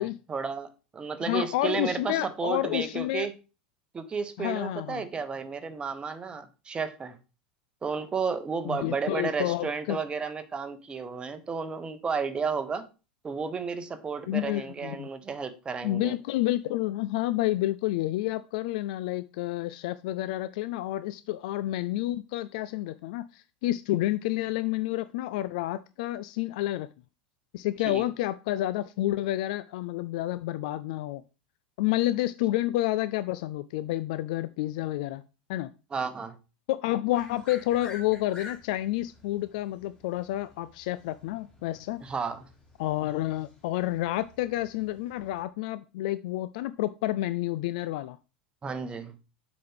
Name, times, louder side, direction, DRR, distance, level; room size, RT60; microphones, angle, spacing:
voice 1, 0.0-3.3 3.9-7.2 7.8-12.9 13.2-16.1 27.9-28.0 35.9-36.4 42.0-42.5 48.6-49.1, right 5 dB, 20° right, 0.9 m, -32 dB
voice 2, 1.2-3.3 4.4-5.1 8.7-10.0 14.3-15.1 15.8-26.9 27.5-31.2 31.8-35.2 35.5-35.7 36.7-42.0 42.8-48.2, left 15 dB, 55° left, 0.3 m, -29 dB
sound 1, 37.1-45.4, left 3 dB, 20° left, 2.8 m, -51 dB
7.7 x 5.0 x 3.5 m
figure-of-eight pair, 85°, 5 cm